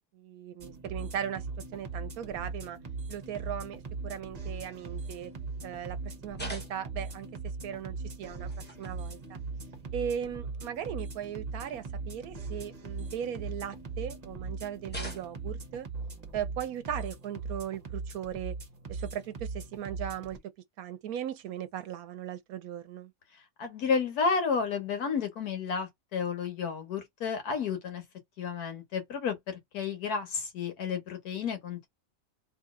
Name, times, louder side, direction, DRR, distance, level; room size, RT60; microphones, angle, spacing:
voice 1, 0.1-1.5 1.7-2.8 3.1-5.3 5.6-7.3 7.6-8.5 8.8-9.4 9.9-15.9 16.3-18.5 18.9-20.4 20.8-23.1, right 9 dB, 70° right, 1.0 m, -38 dB
sound 1, 0.6-20.4, right 4 dB, 35° right, 0.7 m, -40 dB
sound 2, 6.3-7.1 8.4-9.0 10.0-10.1 10.6-10.7 12.9-13.7 14.9-15.6 17.3-17.5 19.1-19.2 20.4-20.5 21.7-22.0, equal, 15° left, 0.4 m, -45 dB
voice 2, 23.6-28.0 28.4-31.9, left 5 dB, 70° left, 1.5 m, -31 dB
3.1 x 2.7 x 3.6 m
omnidirectional pair, 1.7 m